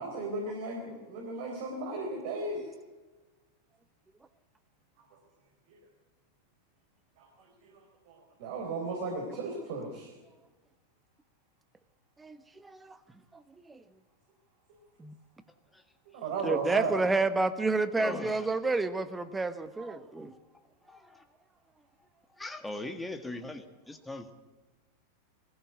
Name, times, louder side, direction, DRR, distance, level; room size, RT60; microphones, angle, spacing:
voice 1, 0.0-2.7 7.2-10.1 16.1-17.0, right 3 dB, 50° right, 1 dB, 4.1 m, -35 dB
voice 2, 12.2-13.0 13.3-13.4 13.7-13.8 15.0-15.1 16.4-20.3, right 3 dB, 10° right, 12 dB, 1.3 m, -30 dB
voice 3, 18.0-18.5 20.9-21.2 22.4-24.3, left 2 dB, 5° left, 7 dB, 1.7 m, -39 dB
21.0 x 15.5 x 8.2 m, 1.2 s
figure-of-eight pair, 90°, 0 cm